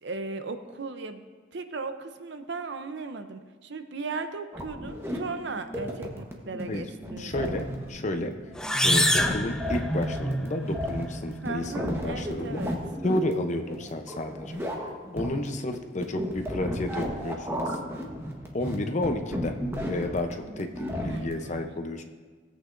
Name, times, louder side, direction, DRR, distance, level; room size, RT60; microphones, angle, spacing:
voice 1, 0.0-1.3 1.5-7.7 11.4-12.8 20.9-21.7, right 3 dB, 65° right, 8 dB, 0.7 m, -37 dB
sound 1, 4.5-21.3, equal, 15° right, 1.1 m, -33 dB
voice 2, 7.2-8.3 8.8-12.6 13.0-14.6 15.1-18.0 18.5-19.6 19.9-22.0, left 1 dB, 40° left, 6 dB, 0.7 m, -31 dB
sound 2, 8.6-10.4, left 1 dB, 5° left, 0.4 m, -26 dB
17.5 x 8.3 x 2.6 m, 1.4 s
head